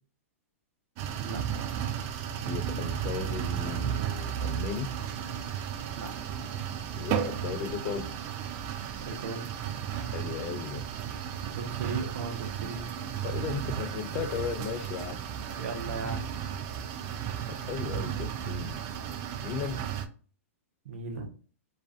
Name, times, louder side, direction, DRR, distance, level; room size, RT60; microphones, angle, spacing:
sound 1, 1.0-20.1, right 9 dB, 35° right, 0.3 m, -34 dB
voice 1, 2.4-4.9 6.9-8.1 10.1-10.8 13.2-15.2 17.6-18.8 19.4-19.8, left 7 dB, 35° left, 8 dB, 0.4 m, -36 dB
voice 2, 9.0-9.5 11.5-12.9 15.5-16.3 20.8-21.3, right 3 dB, 65° right, 5 dB, 0.7 m, -37 dB
2.4 x 2.4 x 2.3 m, 0.40 s
hypercardioid pair, 130°, 8 cm